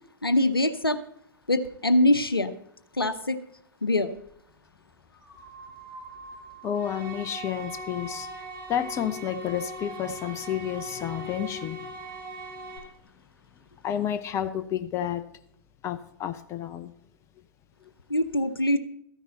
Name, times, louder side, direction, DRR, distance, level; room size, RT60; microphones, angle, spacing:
voice 1, 0.2-1.0 1.5-2.5 3.0-3.4 3.8-4.1 18.1-18.8, left 1 dB, 90° left, 12 dB, 0.7 m, -23 dB
sound 1, 4.2-4.3 5.1-12.8, right 1 dB, 10° left, 1.8 m, -45 dB
voice 2, 6.6-8.3 8.7-11.9 13.8-15.2 15.8-16.9, left 10 dB, 25° left, 12 dB, 0.6 m, -30 dB
sound 2, 6.7-12.8, right 1 dB, 15° right, 4.9 m, -40 dB
13.5 x 10.0 x 4.0 m, 0.73 s
figure-of-eight pair, 105°, 12 cm